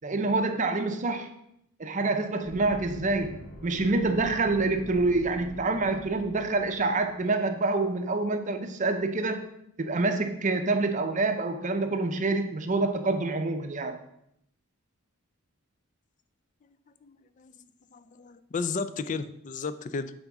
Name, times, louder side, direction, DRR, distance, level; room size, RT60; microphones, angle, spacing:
voice 1, 0.0-1.3 1.8-9.4 9.8-14.0, right 3 dB, 35° right, 7 dB, 0.6 m, -27 dB
sound 1, 2.4-7.3, equal, 55° left, 1.2 m, -45 dB
voice 2, 17.0-17.5 17.9-20.1, left 4 dB, 35° left, 13 dB, 0.4 m, -34 dB
8.9 x 3.5 x 6.0 m, 0.76 s
head